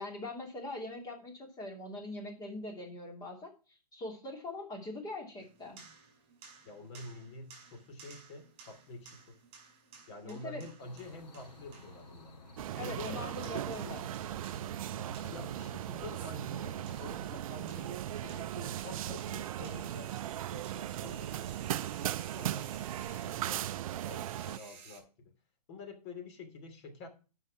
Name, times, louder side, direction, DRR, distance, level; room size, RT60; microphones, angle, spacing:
voice 1, 0.0-5.8 10.2-10.6 12.7-14.1, left 2 dB, 20° left, 2 dB, 2.8 m, -42 dB
sound 1, 5.4-25.0, right 6 dB, 25° right, 5.6 m, -56 dB
voice 2, 6.6-9.4 10.1-12.3 12.8-13.6 15.2-21.6 22.0-22.7 23.0-25.3 25.7-27.1, left 2 dB, 45° left, 5 dB, 2.9 m, -48 dB
sound 2, 10.8-17.4, left 2 dB, 90° left, 2.9 m, -52 dB
sound 3, 12.6-24.6, right 12 dB, 55° right, 0.4 m, -38 dB
9.8 x 5.7 x 5.9 m, 0.33 s
hypercardioid pair, 135°, 20 cm